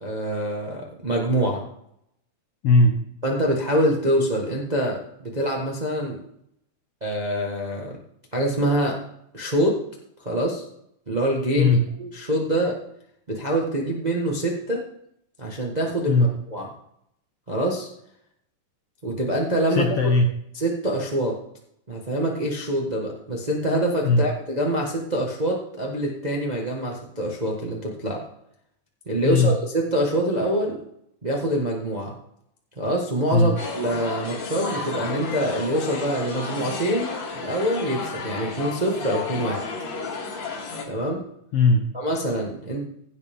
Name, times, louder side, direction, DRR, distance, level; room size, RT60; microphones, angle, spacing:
voice 1, 0.0-1.6 3.2-6.2 7.0-8.0 8.3-9.0 9.3-9.8 10.2-10.6 11.1-12.7 13.3-14.8 15.4-16.7 17.5-17.9 19.0-19.9 20.5-21.4 21.9-28.2 29.1-30.8 31.2-32.1 32.8-39.6 40.9-41.2 41.9-42.8, right 1 dB, 80° right, -1 dB, 0.3 m, -25 dB
voice 2, 2.6-3.0 11.6-11.9 16.1-16.4 19.7-20.3 24.0-24.2 29.2-29.6 33.3-33.6 41.5-41.9, left 3 dB, 85° left, 4 dB, 1.3 m, -18 dB
sound 1, 33.6-40.8, left 4 dB, 60° left, 3.0 m, -32 dB
16.0 x 8.0 x 3.6 m, 0.73 s
omnidirectional pair, 3.9 m